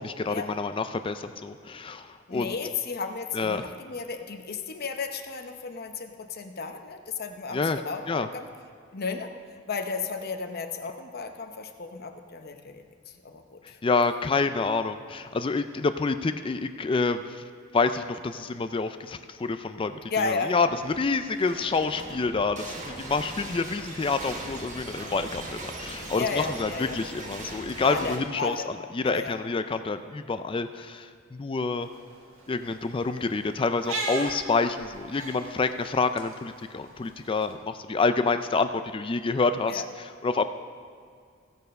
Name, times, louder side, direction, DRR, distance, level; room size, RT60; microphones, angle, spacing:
voice 1, 0.0-2.6 3.3-3.7 7.5-7.8 8.1-8.3 13.8-17.4 17.7-31.9 32.5-40.4, left 4 dB, 25° left, 10 dB, 0.4 m, -28 dB
voice 2, 2.3-8.5 8.9-9.3 9.7-13.8 20.1-20.5 26.1-27.0 27.8-28.7 29.0-29.4 39.7-39.8, left 4 dB, 50° left, 6 dB, 0.8 m, -33 dB
sound 1, 20.5-28.2, right 2 dB, 35° right, 1.4 m, -40 dB
sound 2, 31.8-37.5, right 3 dB, 75° right, 1.6 m, -39 dB
16.0 x 6.7 x 5.3 m, 2.2 s
head